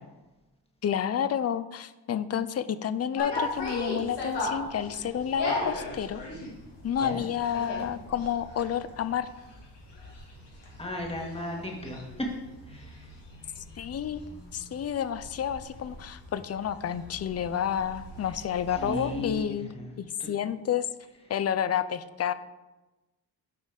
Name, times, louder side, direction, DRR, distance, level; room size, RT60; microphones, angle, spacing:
voice 1, 0.8-6.2 6.8-9.3 13.6-14.2 14.5-19.7 20.0-20.9 21.3-22.3, left 9 dB, 40° left, 14 dB, 0.5 m, -30 dB
sound 1, 3.2-19.4, left 2 dB, 75° left, 2.4 m, -38 dB
voice 2, 10.8-12.3 12.6-13.1 18.3-18.4 18.7-19.9 20.2-20.3, equal, 15° left, 0 dB, 1.8 m, -35 dB
7.9 x 5.3 x 5.2 m, 1.1 s
cardioid pair, 95°, 42 cm